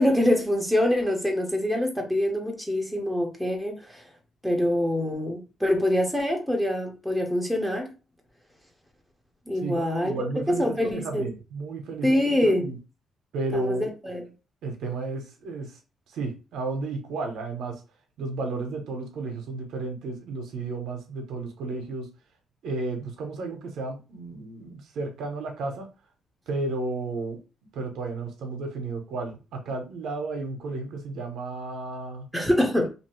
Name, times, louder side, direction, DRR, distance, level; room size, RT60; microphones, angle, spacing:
voice 1, 0.0-4.0 4.4-7.9 9.5-11.2 12.0-12.7 13.5-14.2 32.3-32.9, left 1 dB, ahead, 0.9 m, -25 dB
voice 2, 9.6-12.7 13.3-13.9 14.6-15.8 16.1-17.8 18.2-22.1 22.6-25.9 26.5-27.4 27.7-32.3, right 3 dB, 80° right, 0.8 m, -33 dB
2.8 x 2.6 x 3.1 m
cardioid pair, 90°, 0 cm